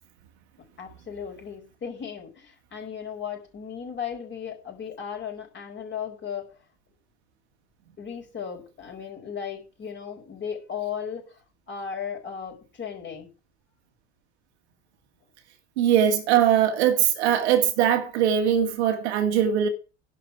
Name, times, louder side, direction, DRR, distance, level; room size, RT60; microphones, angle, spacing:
voice 1, 0.8-6.5 8.0-11.3 11.7-13.3, left 7 dB, 30° left, 4.9 m, -36 dB
voice 2, 15.8-19.7, right 9 dB, 65° right, 2.0 m, -21 dB
11.0 x 5.5 x 8.4 m
figure-of-eight pair, 70°, 36 cm